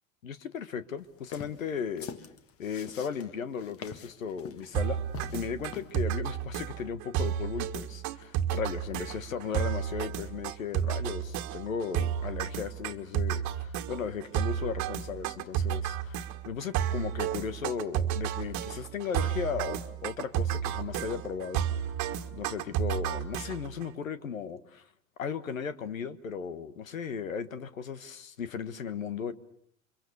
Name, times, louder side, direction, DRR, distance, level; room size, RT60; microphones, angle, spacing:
voice 1, 0.2-2.1 2.6-5.0 5.3-21.9 22.3-24.8 25.2-29.3, left 6 dB, 75° left, 1.4 m, -36 dB
sound 1, 1.2-5.9, left 8 dB, 35° left, 1.6 m, -45 dB
sound 2, 4.7-23.8, right 10 dB, 45° right, 1.7 m, -32 dB
29.5 x 24.0 x 7.0 m
figure-of-eight pair, 80°, 40 cm